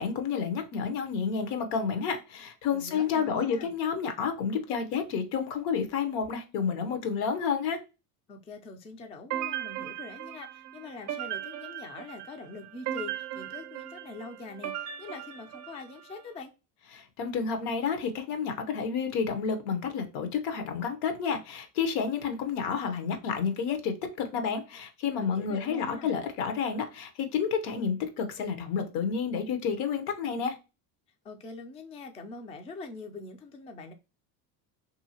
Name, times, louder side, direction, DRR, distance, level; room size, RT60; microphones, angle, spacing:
voice 1, 0.0-7.8 16.9-30.6, left 6 dB, 75° left, 0.9 m, -30 dB
voice 2, 2.7-3.7 8.3-16.5 25.2-26.1 31.2-33.9, left 3 dB, 15° left, 0.3 m, -43 dB
sound 1, 9.3-16.2, right 12 dB, 40° right, 0.5 m, -38 dB
2.8 x 2.7 x 2.8 m
supercardioid pair, 110°, 42 cm